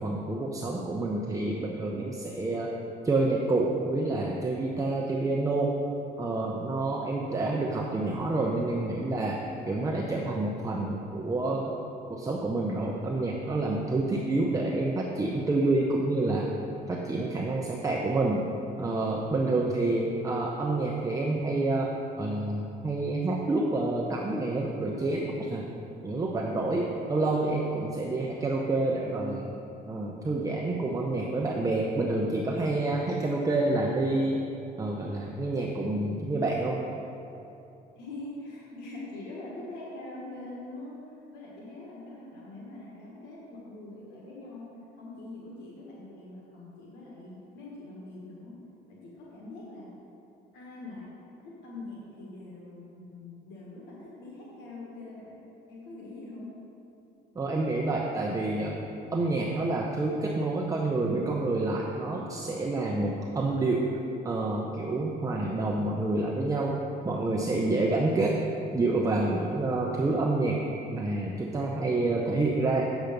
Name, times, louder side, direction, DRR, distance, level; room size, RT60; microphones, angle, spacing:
voice 1, 0.0-2.7 3.0-5.7 6.2-11.8 12.1-16.5 16.9-18.4 18.8-25.6 26.0-29.5 29.9-34.4 34.8-36.8 57.4-58.8 59.1-63.9 64.2-66.8 67.0-68.4 68.7-70.6 70.9-72.8, right 2 dB, 20° right, -1 dB, 0.7 m, -28 dB
voice 2, 38.0-41.0 41.3-48.6 48.9-50.0 50.5-51.1 51.4-55.4 55.7-56.5, left 2 dB, 85° left, -5 dB, 1.7 m, -43 dB
8.1 x 6.8 x 5.2 m, 2.8 s
cardioid pair, 110°, 17 cm